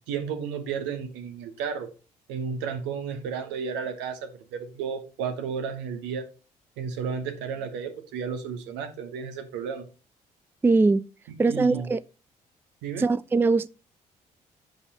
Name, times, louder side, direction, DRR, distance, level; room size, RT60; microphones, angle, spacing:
voice 1, 0.1-1.9 2.3-6.3 6.8-9.9 11.5-11.9 12.8-13.1, right 6 dB, 75° right, 1.2 m, -33 dB
voice 2, 10.6-11.0 11.4-12.0 13.0-13.7, right 3 dB, 10° right, 0.3 m, -21 dB
8.2 x 5.2 x 4.2 m
hypercardioid pair, 50°, 19 cm